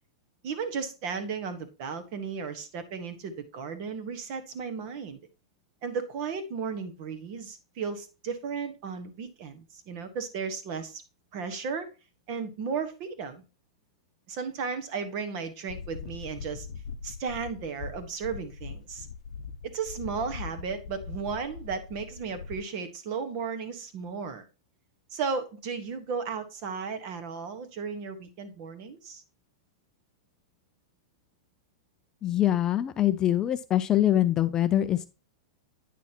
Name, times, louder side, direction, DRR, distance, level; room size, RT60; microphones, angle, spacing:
voice 1, 0.4-5.2 5.8-11.0 11.3-11.9 12.3-13.4 14.3-16.7 17.0-19.1 19.6-24.4 25.1-29.2, right 5 dB, 40° right, 10 dB, 1.4 m, -35 dB
sound 1, 15.7-22.6, left 6 dB, 85° left, 0.7 m, -41 dB
voice 2, 32.2-35.1, left 12 dB, 20° left, 11 dB, 0.4 m, -24 dB
9.2 x 6.2 x 3.0 m, 0.31 s
supercardioid pair, 155°, 3 cm